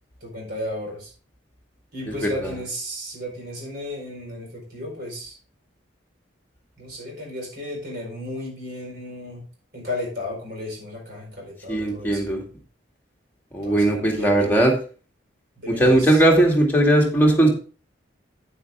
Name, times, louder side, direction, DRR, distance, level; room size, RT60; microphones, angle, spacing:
voice 1, 0.2-1.1 1.9-5.4 6.8-9.4 9.7-12.4 13.6-14.6 15.6-16.2, left 1 dB, 50° right, -1 dB, 4.6 m, -34 dB
voice 2, 11.7-12.4 13.5-14.7 15.8-17.5, right 1 dB, 10° left, -1 dB, 2.1 m, -18 dB
9.3 x 8.4 x 3.6 m, 0.37 s
head